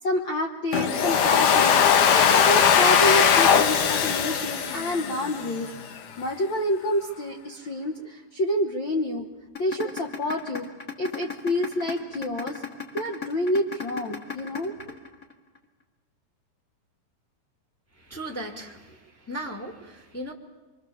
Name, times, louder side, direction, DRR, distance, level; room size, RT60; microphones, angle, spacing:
voice 1, 0.0-1.7 2.1-5.7 6.2-9.3 9.6-10.7 11.0-12.6 12.9-15.0, left 1 dB, 80° left, 2 dB, 1.0 m, -28 dB
Domestic sounds home sounds, 0.7-5.7, left 7 dB, 65° left, 2.6 m, -20 dB
sound 1, 9.6-15.6, left 6 dB, 30° left, 1.9 m, -34 dB
voice 2, 18.1-19.0 19.3-20.3, right 1 dB, 10° left, 1 dB, 1.0 m, -36 dB
26.0 x 24.0 x 7.1 m, 1.2 s
omnidirectional pair, 4.3 m